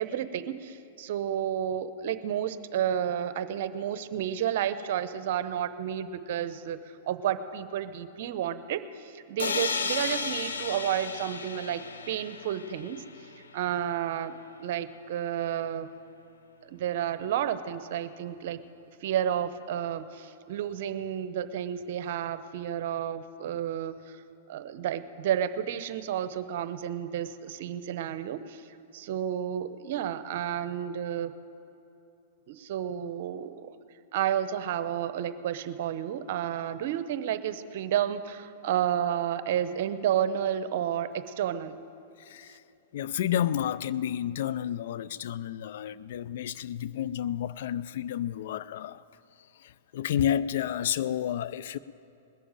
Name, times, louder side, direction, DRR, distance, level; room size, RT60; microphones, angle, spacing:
voice 1, 0.0-6.8 7.1-13.0 13.5-15.9 16.6-18.6 19.0-24.2 24.5-28.7 28.9-31.3 32.5-33.8 34.1-41.7, right 10 dB, 60° right, 0.8 m, -31 dB
sound 1, 9.4-13.2, left 5 dB, 85° left, 1.0 m, -33 dB
voice 2, 42.2-42.6 42.9-49.0 49.6-51.8, left 10 dB, 65° left, 0.4 m, -31 dB
20.0 x 7.0 x 8.9 m
hypercardioid pair, 115°, 0 cm